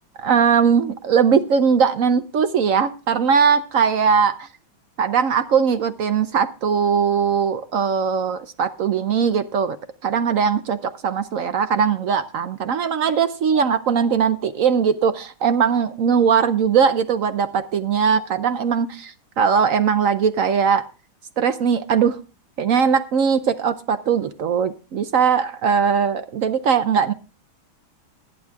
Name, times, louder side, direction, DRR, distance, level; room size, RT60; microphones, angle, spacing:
voice 1, 0.2-4.5 5.0-9.8 10.0-19.1 19.4-20.8 21.4-22.2 22.6-27.1, right 6 dB, 70° right, 0.8 m, -20 dB
23.0 x 9.1 x 2.3 m
omnidirectional pair, 2.2 m